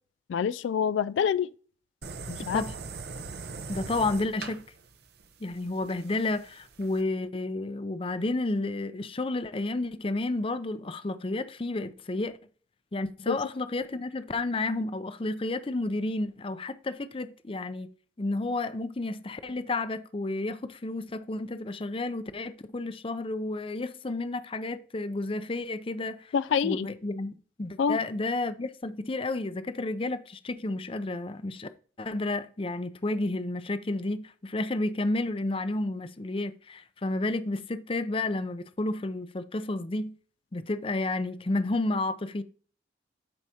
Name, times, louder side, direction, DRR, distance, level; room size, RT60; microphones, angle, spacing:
voice 1, 0.3-1.5 2.3-2.6 13.3-13.4 26.3-26.9 27.8-28.0, left 7 dB, 85° left, 0.3 m, -26 dB
sound 1, 2.0-7.0, right 4 dB, 60° right, 0.9 m, -41 dB
voice 2, 3.7-4.6 5.4-12.4 12.9-17.9 18.2-26.3 26.6-31.7 32.0-40.2 40.5-42.4, left 2 dB, 30° left, 0.5 m, -31 dB
13.0 x 4.7 x 2.8 m
head